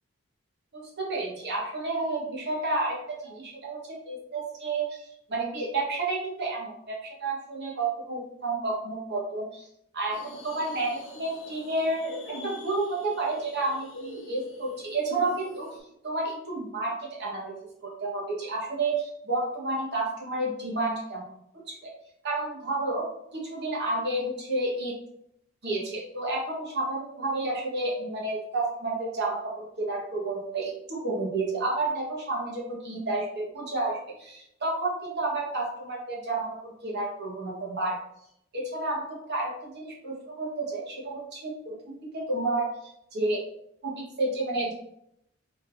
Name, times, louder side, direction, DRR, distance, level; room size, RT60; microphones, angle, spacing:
voice 1, 0.7-5.0 5.3-9.6 9.9-12.1 12.4-15.7 16.0-17.5 17.8-21.2 21.7-21.9 22.2-24.9 25.6-38.0 38.5-41.7 42.1-43.4 43.8-44.7, right 2 dB, 55° right, -3 dB, 1.3 m, -30 dB
sound 1, 10.1-15.8, left 1 dB, 65° left, 0.7 m, -44 dB
3.8 x 2.6 x 3.8 m, 0.76 s
head